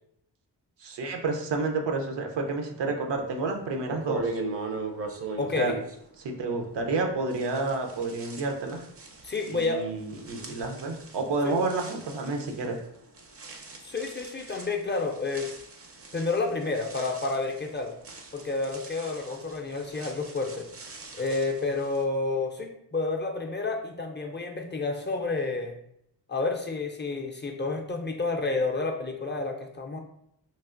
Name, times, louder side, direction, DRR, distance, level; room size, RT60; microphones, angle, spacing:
voice 1, 0.8-4.4 5.6-5.7 6.2-8.8 9.5-12.8, right 3 dB, 75° right, 3 dB, 0.6 m, -30 dB
sound 1, 3.3-3.4 3.8-7.0 7.3-22.0, right 3 dB, 35° right, 0.5 m, -40 dB
voice 2, 5.4-5.8 9.2-9.8 10.4-10.6 11.4-11.5 13.8-15.5 16.1-17.9 18.3-20.7 21.1-25.7 26.3-30.0, left 3 dB, 25° left, 2 dB, 0.4 m, -30 dB
3.2 x 2.4 x 2.4 m, 0.74 s
cardioid pair, 70°, 42 cm